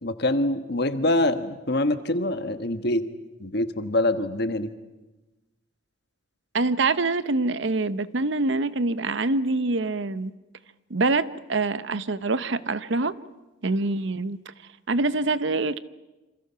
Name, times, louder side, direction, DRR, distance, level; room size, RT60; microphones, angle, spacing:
voice 1, 0.0-3.0 3.4-4.7, left 1 dB, 55° left, 1.4 m, -25 dB
voice 2, 6.5-10.3 10.9-13.1 13.6-14.4 14.9-15.8, right 3 dB, 65° right, 0.8 m, -25 dB
28.0 x 27.0 x 5.8 m
head